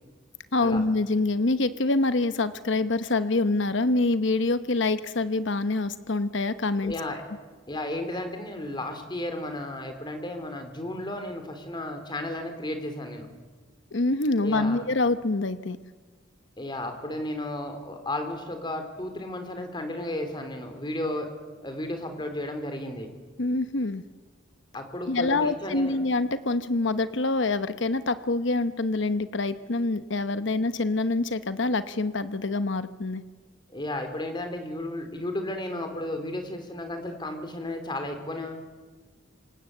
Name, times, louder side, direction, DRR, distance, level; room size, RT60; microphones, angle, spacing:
voice 1, 0.5-6.9 13.9-15.8 23.4-24.0 25.1-33.2, left 2 dB, 65° left, 12 dB, 1.0 m, -26 dB
voice 2, 6.8-7.2 7.7-13.3 14.4-14.8 16.6-21.3 21.6-23.1 24.7-26.0 33.7-38.7, left 1 dB, 25° left, 6 dB, 3.6 m, -33 dB
27.0 x 26.0 x 7.9 m, 1.3 s
head